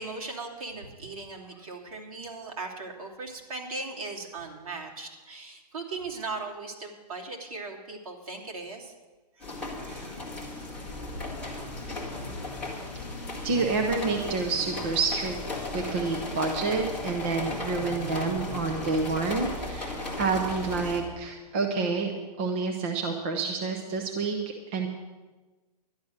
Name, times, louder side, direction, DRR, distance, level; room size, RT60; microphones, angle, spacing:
voice 1, 0.0-8.9 9.3-10.8 12.2-12.4, right 3 dB, 55° right, 0 dB, 2.9 m, -39 dB
sound 1, 9.4-21.0, left 2 dB, 5° left, 1.7 m, -36 dB
voice 2, 13.4-15.4 15.7-22.1 22.4-24.4 24.7-24.9, right 4 dB, 20° right, 3 dB, 0.6 m, -28 dB
12.0 x 11.0 x 6.5 m, 1.2 s
hypercardioid pair, 180°, 21 cm